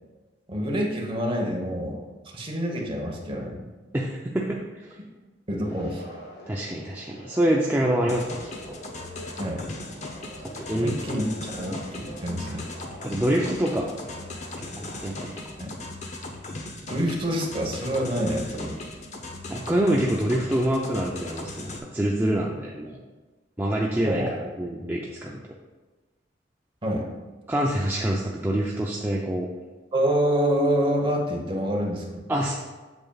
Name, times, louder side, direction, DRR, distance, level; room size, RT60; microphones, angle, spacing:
voice 1, 0.5-2.0 2.3-3.6 5.5-6.0 9.4-9.7 10.7-12.6 15.6-15.7 16.9-18.8 24.0-24.5 26.8-27.1 29.9-32.2, equal, 30° right, 0 dB, 1.2 m, -27 dB
voice 2, 3.9-5.0 6.5-8.8 10.6-10.9 13.0-13.9 14.6-15.3 19.5-23.0 23.6-25.4 27.5-29.5 32.3-32.5, right 1 dB, 10° right, -2 dB, 0.5 m, -26 dB
sound 1, 5.6-15.1, equal, 60° left, 1.7 m, -45 dB
sound 2, 8.1-21.8, left 2 dB, 40° left, 0.8 m, -38 dB
7.9 x 7.2 x 2.4 m, 1.3 s
head